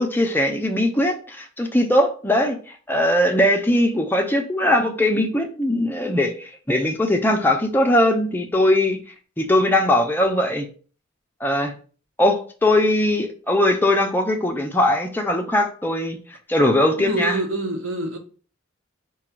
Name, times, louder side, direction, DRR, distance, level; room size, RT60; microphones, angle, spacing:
voice 1, 0.0-2.6 2.9-9.0 9.4-10.7 11.4-11.7 12.2-16.2 16.5-17.4, left 1 dB, 10° left, 0.5 m, -20 dB
voice 2, 17.0-18.2, right 2 dB, 75° right, 1.0 m, -26 dB
4.9 x 2.3 x 4.4 m
head